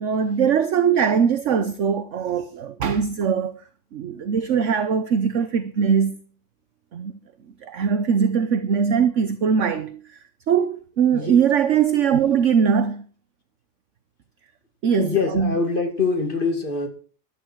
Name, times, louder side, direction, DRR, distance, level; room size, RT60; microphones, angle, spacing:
voice 1, 0.0-3.6 3.9-6.2 6.9-7.2 7.6-13.1 14.8-15.6, right 7 dB, 55° right, 1.1 m, -21 dB
voice 2, 15.0-16.9, left 4 dB, 30° left, 2.6 m, -24 dB
14.5 x 11.5 x 4.6 m
omnidirectional pair, 1.7 m